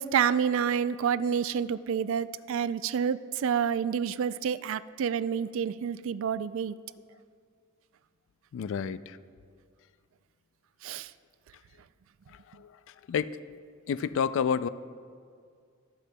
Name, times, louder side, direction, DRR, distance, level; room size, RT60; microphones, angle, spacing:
voice 1, 0.0-6.7 10.8-11.1, right 7 dB, 65° right, 16 dB, 0.3 m, -28 dB
voice 2, 8.5-9.2 12.6-12.7 13.1-13.4 13.9-14.7, left 7 dB, 60° left, 15 dB, 0.3 m, -29 dB
23.5 x 8.3 x 2.2 m, 2.2 s
head